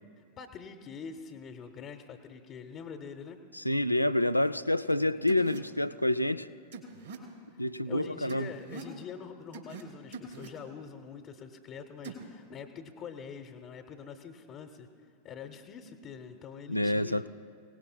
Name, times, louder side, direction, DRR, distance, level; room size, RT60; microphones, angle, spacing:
voice 1, 0.2-3.4 7.9-14.9 15.2-17.2, left 6 dB, 35° left, 0.8 m, -45 dB
voice 2, 3.5-6.5 7.6-8.5 16.7-17.3, left 1 dB, 90° left, 0.3 m, -28 dB
sound 1, 4.9-5.0 5.3-5.6 6.7-7.2 8.3-8.9 9.5-9.8 10.1-10.5 12.0-12.2, right 4 dB, 65° right, 2.7 m, -43 dB
23.5 x 18.0 x 2.2 m
figure-of-eight pair, 90°, 0 cm